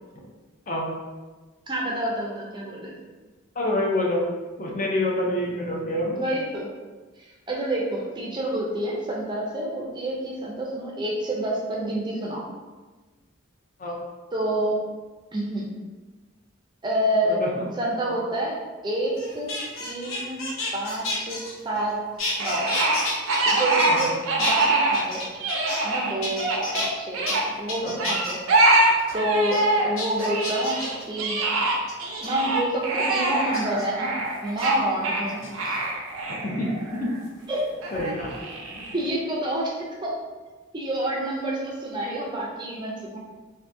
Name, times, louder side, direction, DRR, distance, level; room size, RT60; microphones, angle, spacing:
voice 1, 1.7-3.0 6.2-6.7 7.2-12.4 14.3-14.8 15.3-15.7 16.8-17.4 17.8-18.6 18.8-19.5 19.8-20.5 20.7-22.0 22.4-22.7 23.4-24.1 24.4-25.2 25.8-28.4 29.1-31.4 32.2-35.8 37.5-37.6 38.9-40.2 40.7-43.2, right 1 dB, 20° right, -3 dB, 0.4 m, -28 dB
voice 2, 3.5-4.3 4.6-6.2 13.8-14.0 17.3-17.7 18.1-18.2 23.9-24.1 27.8-28.1 36.3-37.1 37.9-38.3, left 1 dB, 40° left, -2 dB, 0.5 m, -27 dB
sound 1, 19.2-21.9 22.2-24.1 24.4-25.9 26.2-26.9 27.3-27.4 27.7-28.4 28.8-29.1 29.5-29.6 30.0-31.0 31.9-32.3 33.5-33.9 34.5-34.7 35.3-35.8 37.3-38.4 38.7-39.1, left 2 dB, 80° left, 0.7 m, -32 dB
sound 2, 22.4-25.1 25.3-27.4 28.0-29.9 30.2-37.2 37.8-39.1, right 2 dB, 90° right, 0.5 m, -24 dB
3.6 x 2.6 x 2.6 m, 1.3 s
head